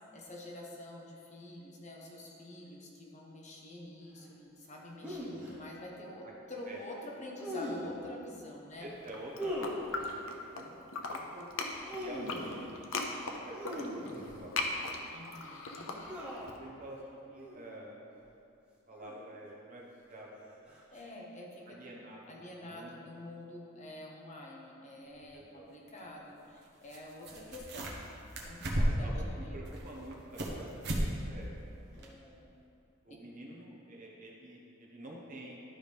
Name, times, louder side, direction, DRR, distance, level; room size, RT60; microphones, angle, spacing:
voice 1, 0.1-8.9 15.1-16.0 20.9-21.8 22.3-28.0 28.4-29.6 32.0-32.6 33.1-33.2, left 1 dB, 35° left, -2 dB, 1.0 m, -47 dB
sound 1, 5.0-5.5 7.4-8.0 9.4-10.1 11.7-12.7 13.5-14.7 16.1-16.6 17.4-17.6 18.9-19.5 20.7-21.0, equal, 5° right, 1.1 m, -40 dB
voice 2, 8.8-11.5 11.9-14.9 16.6-17.0 17.3-18.0 18.9-20.5 21.7-22.9 25.3-25.7 29.0-31.5 31.9-32.1 33.0-35.6, right 1 dB, 40° right, -3 dB, 1.2 m, -48 dB
sound 2, 9.0-10.6 10.9-16.5, left 3 dB, 65° left, 0.7 m, -38 dB
sound 3, 25.2-25.3 26.9-27.0 27.2-28.1 28.4-29.2 29.7-30.6 30.8-31.1 31.4-31.5 32.0-32.1, equal, 55° right, 1.1 m, -32 dB
12.0 x 4.9 x 3.5 m, 2.6 s
head